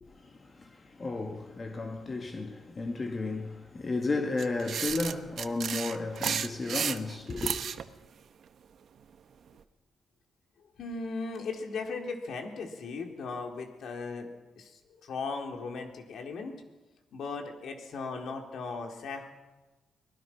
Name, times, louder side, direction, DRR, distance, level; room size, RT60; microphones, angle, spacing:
voice 1, 0.0-7.6, left 3 dB, 35° left, 2.0 m, -33 dB
sound 1, 4.4-7.8, right 8 dB, 65° right, 1.1 m, -33 dB
voice 2, 10.8-16.5 17.1-19.3, left 4 dB, 70° left, 3.7 m, -37 dB
25.0 x 19.5 x 6.0 m
cardioid pair, 100°, 0 cm